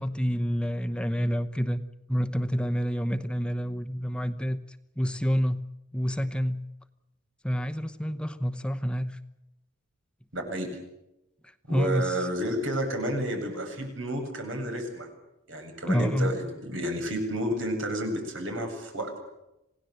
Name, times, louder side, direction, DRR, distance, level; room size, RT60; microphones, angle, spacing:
voice 1, 0.0-1.8 2.1-4.6 5.0-5.6 5.9-6.7 7.4-9.2 11.7-12.3 15.9-16.4, equal, 5° left, 9 dB, 0.9 m, -28 dB
voice 2, 10.3-10.7 11.7-15.1 15.5-19.2, right 1 dB, 80° right, 4 dB, 7.8 m, -31 dB
27.5 x 17.5 x 7.9 m, 0.90 s
head